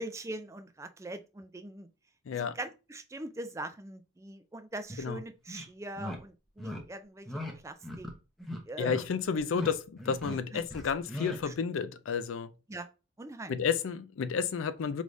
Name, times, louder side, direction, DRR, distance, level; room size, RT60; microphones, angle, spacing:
voice 1, 0.0-1.9 2.3-8.1 8.6-9.1 10.5-10.6 11.4-11.5 12.7-12.9 13.2-13.5, right 2 dB, 15° right, 0.3 m, -42 dB
voice 2, 2.3-2.6 5.0-5.2 8.8-12.5 13.5-15.0, left 6 dB, 80° left, 0.4 m, -31 dB
sound 1, 4.9-5.0 5.5-5.7 6.0-6.2 6.6-6.8 7.3-7.5 7.8-8.1 8.4-9.0 9.4-9.7 10.0-10.4 10.7-11.4, left 1 dB, ahead, 0.7 m, -38 dB
4.9 x 3.2 x 2.6 m
head